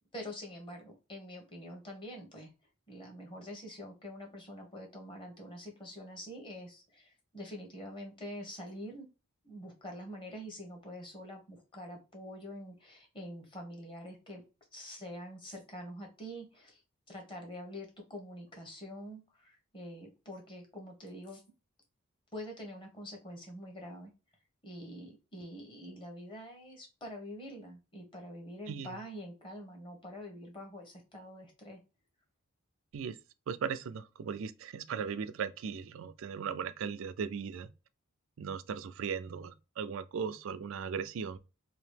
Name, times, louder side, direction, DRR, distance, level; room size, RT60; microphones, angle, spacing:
voice 1, 0.1-2.5 2.9-9.1 9.4-14.4 14.7-16.8 17.1-21.4 22.3-24.1 24.6-31.8, equal, 25° left, 1.0 m, -46 dB
voice 2, 33.5-37.7 38.4-41.4, right 6 dB, 65° right, 0.3 m, -37 dB
2.9 x 2.8 x 3.2 m
head